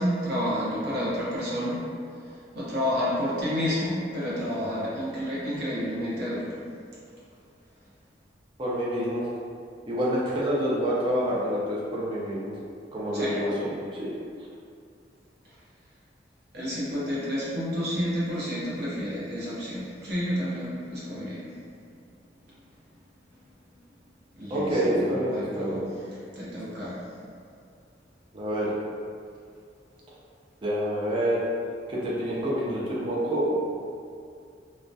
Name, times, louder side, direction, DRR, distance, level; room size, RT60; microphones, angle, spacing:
voice 1, 0.0-1.8 2.2-6.5 13.1-13.3 16.5-21.6 24.4-25.9 26.3-27.0, equal, 60° right, -8 dB, 0.7 m, -30 dB
voice 2, 8.6-9.2 9.9-12.5 12.9-14.1 24.5-25.9 28.3-28.7 30.6-31.4 31.9-33.5, equal, 30° right, -7 dB, 0.4 m, -27 dB
2.6 x 2.1 x 2.2 m, 2.4 s
head